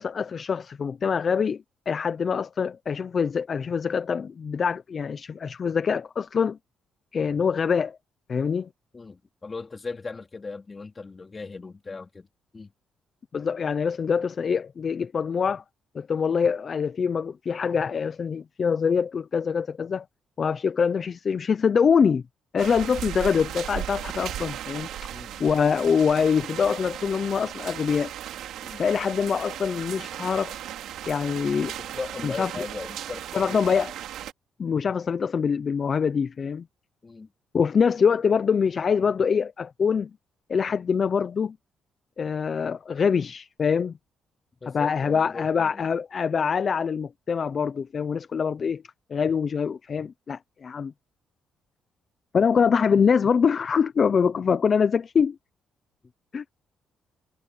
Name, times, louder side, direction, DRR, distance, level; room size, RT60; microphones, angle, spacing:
voice 1, 0.0-6.6 7.1-8.0 8.3-8.7 13.3-15.6 15.9-20.1 20.4-22.2 22.5-24.9 25.4-28.1 28.8-30.5 31.1-31.7 32.2-32.5 33.3-33.9 34.6-36.6 37.5-40.1 40.5-41.6 42.2-44.0 44.7-48.8 49.1-50.9 52.3-55.4 56.3-56.4, left 6 dB, 45° left, 0.8 m, -24 dB
voice 2, 8.9-12.3 12.5-12.7 25.1-25.4 28.6-28.8 31.8-33.7 37.0-37.3 44.6-45.9 56.0-56.1, left 4 dB, 30° left, 3.7 m, -38 dB
sound 1, 22.6-34.3, right 11 dB, 80° right, 3.3 m, -36 dB
cardioid pair, 90°, 0 cm